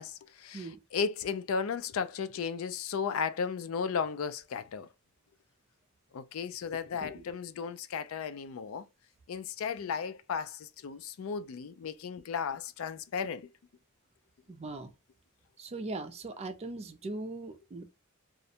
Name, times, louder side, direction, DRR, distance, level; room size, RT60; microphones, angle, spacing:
voice 1, 0.0-4.9 6.1-8.8 9.3-13.5, left 6 dB, 70° left, 0.4 m, -35 dB
voice 2, 14.5-14.9 15.6-17.8, right 2 dB, 30° right, 0.4 m, -40 dB
2.4 x 2.1 x 2.7 m
head